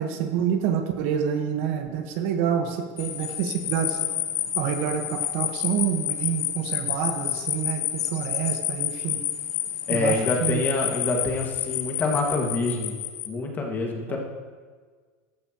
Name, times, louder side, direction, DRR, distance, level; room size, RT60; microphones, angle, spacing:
voice 1, 0.0-4.1 4.5-7.8 8.1-9.2 9.9-10.6, right 8 dB, 55° right, 5 dB, 1.4 m, -27 dB
sound 1, 3.0-13.3, left 11 dB, 90° left, 0.9 m, -29 dB
voice 2, 9.9-12.9 13.3-14.2, left 3 dB, 20° left, 0 dB, 2.0 m, -26 dB
14.5 x 13.0 x 3.0 m, 1.6 s
supercardioid pair, 145°, 8 cm